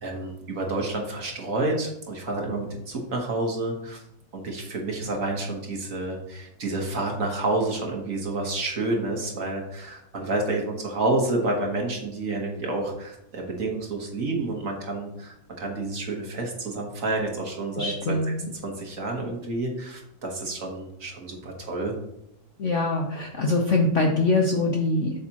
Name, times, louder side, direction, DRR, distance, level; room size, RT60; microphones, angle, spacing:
voice 1, 0.0-4.0 4.3-18.2 18.6-21.9, right 2 dB, 45° right, 0 dB, 1.5 m, -29 dB
voice 2, 17.8-18.5 22.6-25.1, left 2 dB, 55° left, 1 dB, 0.8 m, -23 dB
8.2 x 6.4 x 2.9 m, 0.83 s
omnidirectional pair, 2.1 m